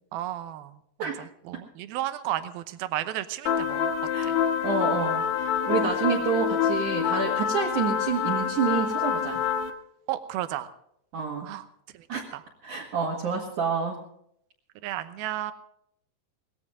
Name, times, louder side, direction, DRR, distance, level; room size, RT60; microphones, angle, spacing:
voice 1, 0.1-3.9 4.2-4.3 10.1-10.7 11.4-11.6 11.9-12.1 12.3-12.4 14.8-15.5, right 13 dB, 75° right, 11 dB, 2.5 m, -33 dB
sound 1, 3.5-9.7, left 8 dB, 85° left, 1.6 m, -26 dB
voice 2, 4.6-9.4 11.1-11.5 12.1-12.2 12.6-14.0, right 5 dB, 55° right, -2 dB, 2.8 m, -28 dB
20.0 x 15.5 x 3.6 m, 0.72 s
omnidirectional pair, 5.0 m